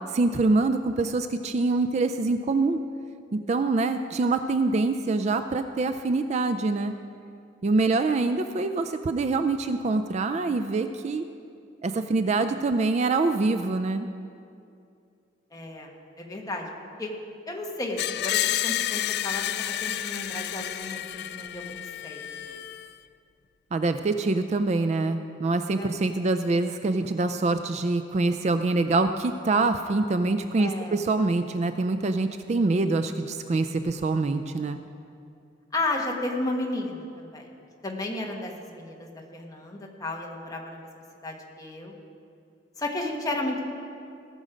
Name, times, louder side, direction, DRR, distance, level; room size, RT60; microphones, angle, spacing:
voice 1, 0.1-2.8 3.5-6.9 7.6-11.3 11.8-14.1 23.7-34.8, right 3 dB, 35° right, 9 dB, 0.3 m, -25 dB
voice 2, 15.5-15.9 16.2-16.7 17.0-17.1 17.5-21.8 22.0-22.6 25.7-25.9 30.6-31.0 35.7-37.5 37.8-40.9 41.2-41.9 42.8-43.7, left 2 dB, 20° left, 0 dB, 1.3 m, -33 dB
Screech, 18.0-22.9, left 12 dB, 60° left, 0.3 m, -30 dB
18.0 x 6.3 x 5.1 m, 2.5 s
head